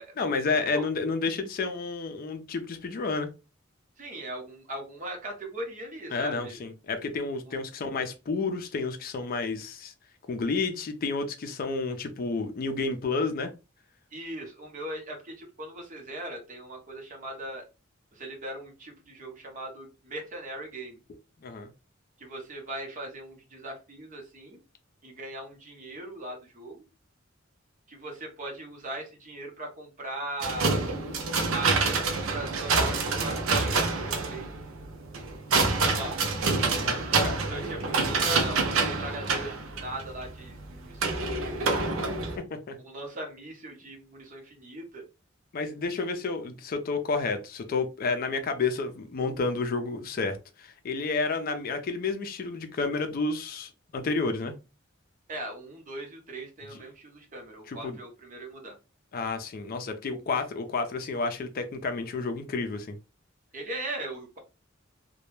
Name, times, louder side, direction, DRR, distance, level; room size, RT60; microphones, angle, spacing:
voice 1, 0.2-3.3 6.1-9.9 10.3-13.5 21.4-21.7 36.8-37.4 42.4-42.8 45.5-54.5 57.7-58.0 59.1-63.0, left 4 dB, 45° left, 0.4 m, -30 dB
voice 2, 4.0-6.6 14.1-17.6 18.1-21.0 22.2-24.6 25.0-26.8 27.9-30.8 31.5-34.5 35.7-36.2 37.5-42.3 42.8-45.0 55.3-58.8 63.5-64.4, right 1 dB, 40° right, 0.8 m, -39 dB
sound 1, 30.4-42.4, right 4 dB, 90° right, 0.5 m, -27 dB
2.2 x 2.0 x 3.0 m
head